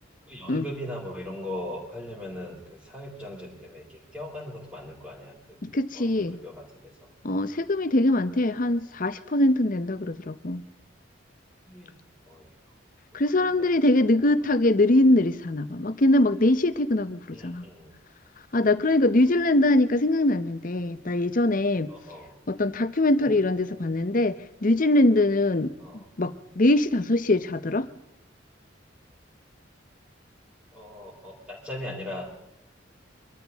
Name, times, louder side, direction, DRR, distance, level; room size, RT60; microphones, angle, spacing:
voice 1, 0.3-5.6 5.9-6.9 8.2-8.8 11.7-12.0 12.2-12.5 13.3-13.7 13.9-14.5 17.3-17.9 21.9-22.3 23.2-23.4 25.8-26.0 30.7-32.2, left 1 dB, 10° right, -9 dB, 4.3 m, -40 dB
voice 2, 5.6-6.4 7.2-10.7 13.1-17.7 18.5-21.9 22.5-25.7 26.2-27.9, left 1 dB, 45° left, 12 dB, 0.8 m, -22 dB
24.5 x 13.5 x 3.6 m, 0.87 s
head